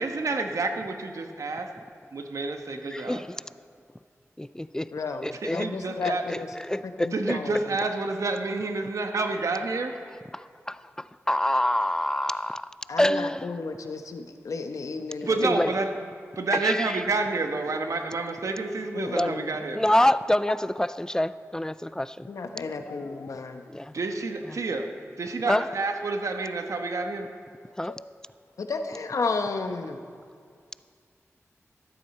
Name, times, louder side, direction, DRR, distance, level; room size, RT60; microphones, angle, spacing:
voice 1, 0.0-1.7 2.1-3.2 5.3-6.3 7.1-9.9 15.3-16.1 16.4-19.9 23.9-24.9 25.2-27.3, right 3 dB, 75° right, 5 dB, 1.1 m, -29 dB
voice 2, 2.9-3.3 4.4-4.9 5.2-5.7 6.0-6.4 6.7-7.1 10.3-12.7 13.0-13.5 15.4-15.7 16.6-17.0 19.2-19.4 19.8-22.3 23.7-23.9 25.5-25.6 27.8-28.0, left 1 dB, 10° left, 16 dB, 0.3 m, -26 dB
voice 3, 4.9-6.5 7.0-7.6 12.9-15.6 18.9-19.5 22.3-23.6 27.9-28.0 28.6-30.0, left 4 dB, 80° left, 7 dB, 0.9 m, -32 dB
13.0 x 13.0 x 4.3 m, 2.2 s
cardioid pair, 55°, 5 cm